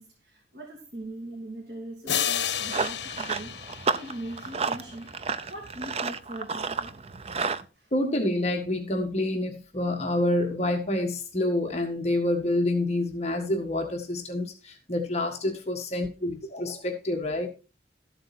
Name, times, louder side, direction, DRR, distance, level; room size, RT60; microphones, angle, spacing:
voice 1, 0.0-3.5 4.0-5.1 5.5-6.9 7.8-7.9, right 1 dB, 60° right, 0 dB, 2.7 m, -40 dB
sound 1, 2.1-4.7, left 9 dB, 75° left, 1.1 m, -31 dB
Run, 2.3-7.6, right 4 dB, 35° right, 0.6 m, -32 dB
voice 2, 7.9-17.5, left 1 dB, 35° left, 2 dB, 1.6 m, -27 dB
13.5 x 7.9 x 4.3 m, 0.32 s
head